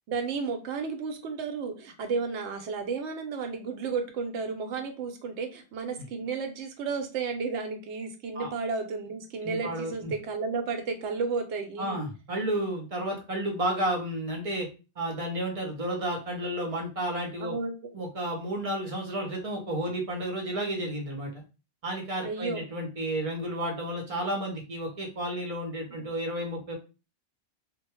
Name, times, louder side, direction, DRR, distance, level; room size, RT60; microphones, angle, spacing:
voice 1, 0.1-12.0 17.4-17.9 22.2-22.6 25.9-26.1, right 4 dB, 80° right, 5 dB, 0.9 m, -33 dB
voice 2, 9.4-10.1 11.8-14.7 15.0-17.5 17.9-21.4 21.8-26.7, right 1 dB, 40° right, 1 dB, 0.6 m, -32 dB
2.2 x 2.0 x 2.9 m, 0.31 s
omnidirectional pair, 1.2 m